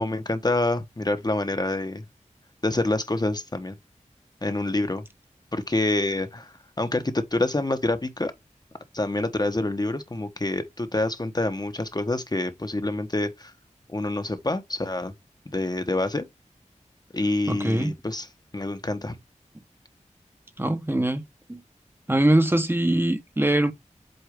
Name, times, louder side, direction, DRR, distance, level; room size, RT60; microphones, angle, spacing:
voice 1, 0.0-2.0 2.6-3.7 4.4-5.0 5.5-8.3 8.9-13.5 13.9-15.1 15.5-16.3 17.1-18.3 18.5-19.1, left 2 dB, 30° left, 1.1 m, -27 dB
voice 2, 17.5-17.9 20.6-21.2 21.5-21.6 22.1-23.7, right 1 dB, 15° right, 1.0 m, -22 dB
8.0 x 2.7 x 5.1 m
wide cardioid pair, 55°, 13 cm